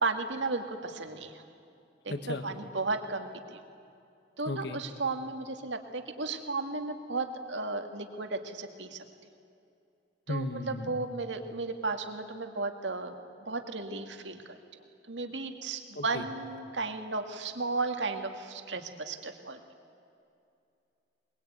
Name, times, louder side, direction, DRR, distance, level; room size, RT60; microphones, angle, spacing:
voice 1, 0.0-1.3 2.0-3.6 4.4-9.0 10.3-13.1 13.5-14.4 15.1-19.6, right 3 dB, 75° right, 6 dB, 2.1 m, -34 dB
voice 2, 2.1-2.4 4.4-4.8 10.3-11.0 15.9-16.2, left 2 dB, 65° left, 9 dB, 1.6 m, -35 dB
22.0 x 22.0 x 9.3 m, 2.6 s
head